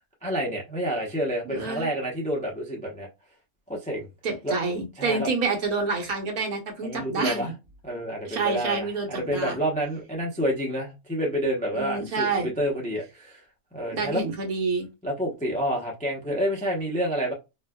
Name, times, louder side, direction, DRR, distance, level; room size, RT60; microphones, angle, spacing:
voice 1, 0.2-3.1 3.7-4.1 4.4-4.5 5.0-5.3 6.8-7.5 7.8-13.4 13.7-14.2 15.0-17.3, equal, 5° left, 0.6 m, -28 dB
voice 2, 1.5-1.9 4.2-7.5 8.3-9.6 11.7-12.5 13.9-14.9, right 4 dB, 75° right, 1.4 m, -28 dB
4.2 x 2.4 x 2.2 m
omnidirectional pair, 1.6 m